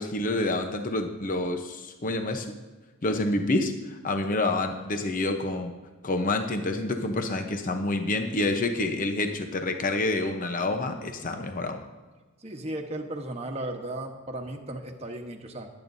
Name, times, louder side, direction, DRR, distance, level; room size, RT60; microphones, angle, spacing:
voice 1, 0.0-2.5 3.0-5.7 6.0-11.8, left 2 dB, 40° left, 5 dB, 0.8 m, -28 dB
voice 2, 12.4-15.7, right 1 dB, 30° right, 3 dB, 1.2 m, -35 dB
21.5 x 8.9 x 2.7 m, 1.3 s
head